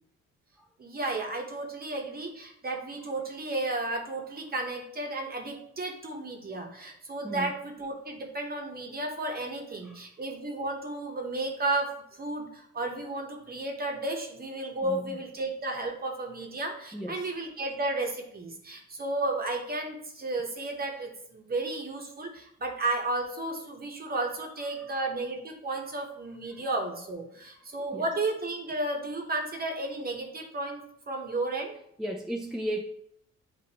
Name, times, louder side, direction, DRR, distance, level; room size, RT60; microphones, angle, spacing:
voice 1, 0.8-31.7, right 2 dB, 30° right, 2 dB, 1.0 m, -33 dB
voice 2, 7.2-7.6 14.8-15.2 16.9-17.3 27.9-28.1 32.0-32.8, right 1 dB, ahead, 1 dB, 0.4 m, -34 dB
7.1 x 2.5 x 2.9 m, 0.71 s
cardioid pair, 90°, 30 cm